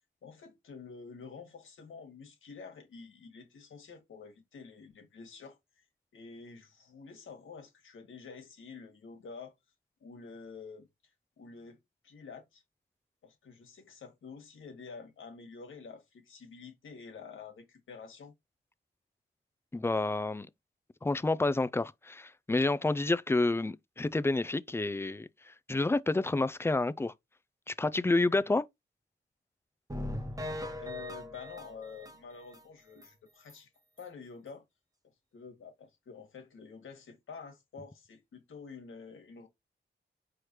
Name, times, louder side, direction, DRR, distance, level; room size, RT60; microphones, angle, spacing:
voice 1, 0.2-5.8 6.1-9.5 10.0-10.9 11.4-11.8 12.0-12.6 13.2-18.3 30.8-33.7 34.0-34.6 35.3-39.5, left 5 dB, 85° left, 1.5 m, -48 dB
voice 2, 19.7-20.5 21.0-27.1 27.7-28.6, left 2 dB, 10° left, 0.4 m, -29 dB
sound 1, 29.9-32.6 33.0-33.1 33.5-33.6 34.0-34.1, left 1 dB, 15° right, 1.1 m, -40 dB
4.9 x 3.1 x 3.0 m
cardioid pair, 55°, 20 cm